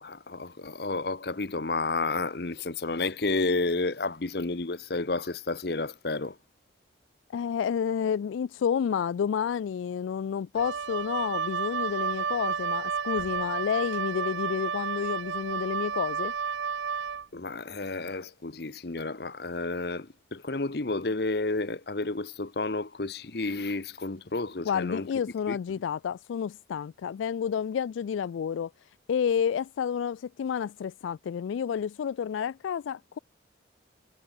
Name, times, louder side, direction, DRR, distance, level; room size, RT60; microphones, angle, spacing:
voice 1, 0.0-6.4 17.3-25.1 25.5-25.6, left 3 dB, 55° left, 1.0 m, -31 dB
voice 2, 7.3-16.3 24.6-28.7 29.1-33.2, left 7 dB, 90° left, 0.3 m, -30 dB
Wind instrument woodwind instrument, 10.6-17.3, right 6 dB, 90° right, 0.7 m, -31 dB
head